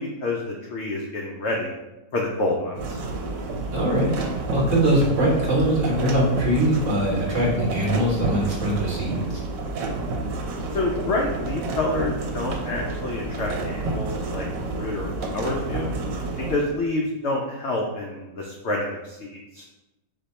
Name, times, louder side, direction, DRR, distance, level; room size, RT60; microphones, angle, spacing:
voice 1, 0.0-1.8 2.1-3.0 10.7-14.5 14.7-15.9 16.5-19.6, left 2 dB, 75° left, -1 dB, 0.6 m, -28 dB
sound 1, 2.7-16.6, right 2 dB, 80° right, 1.3 m, -30 dB
voice 2, 3.7-4.1 4.5-9.4, right 1 dB, 50° right, -3 dB, 1.4 m, -22 dB
4.2 x 2.8 x 4.2 m, 1.0 s
omnidirectional pair, 1.9 m